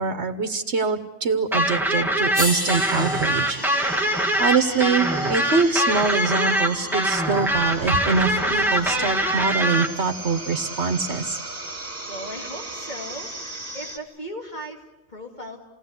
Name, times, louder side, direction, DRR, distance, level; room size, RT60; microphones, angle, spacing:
voice 1, 0.0-3.6 4.4-11.4, right 4 dB, 80° right, 8 dB, 1.5 m, -24 dB
sound 1, 1.5-9.9, right 1 dB, ahead, 1.9 m, -23 dB
sound 2, 1.7-1.8 2.3-6.5 7.9-8.0, equal, 20° right, 6.7 m, -33 dB
sound 3, 3.6-14.0, right 1 dB, 35° right, 3.1 m, -35 dB
voice 2, 12.1-13.3 13.7-15.6, equal, 45° left, 1 dB, 2.7 m, -37 dB
29.0 x 18.5 x 8.1 m, 1.1 s
omnidirectional pair, 1.1 m